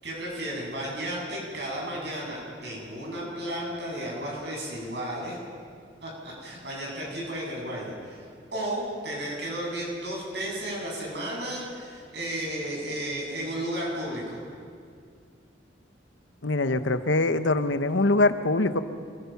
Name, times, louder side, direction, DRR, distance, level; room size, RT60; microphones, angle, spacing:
voice 1, 0.0-5.4 6.0-14.4, right 1 dB, 60° right, -2 dB, 7.9 m, -33 dB
voice 2, 16.4-18.8, left 2 dB, 75° left, 10 dB, 1.1 m, -23 dB
27.5 x 21.5 x 6.0 m, 2.2 s
head